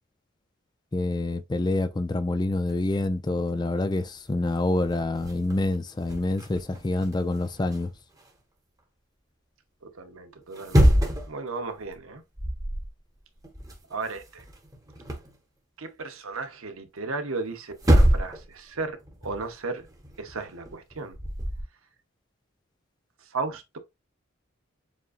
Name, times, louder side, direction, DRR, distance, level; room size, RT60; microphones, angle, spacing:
voice 1, 0.9-7.9, left 2 dB, 20° left, 0.4 m, -27 dB
sound 1, 2.7-3.0 3.7-3.8 4.0-8.3 10.4-11.4 11.8-12.0 12.3-12.9 13.2-15.4 17.3-17.4 17.8-18.5 18.7-21.6, equal, 15° right, 1.1 m, -26 dB
voice 2, 9.9-10.9 11.3-12.2 13.9-14.4 15.8-19.9 20.2-21.2 23.3-23.8, right 3 dB, 85° right, 0.9 m, -35 dB
7.3 x 2.5 x 2.5 m
head